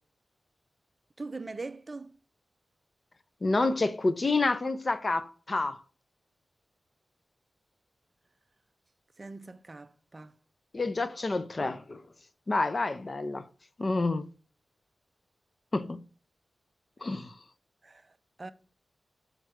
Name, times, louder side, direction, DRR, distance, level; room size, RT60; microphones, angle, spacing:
voice 1, 1.2-2.2 9.2-10.3 17.8-18.5, right 3 dB, 30° right, 0.4 m, -42 dB
voice 2, 3.4-5.8 10.7-12.0 12.5-13.4 13.8-14.3 15.7-16.0 17.0-17.3, left 3 dB, 35° left, 0.5 m, -28 dB
6.5 x 4.6 x 6.2 m
wide cardioid pair, 140°, 0 cm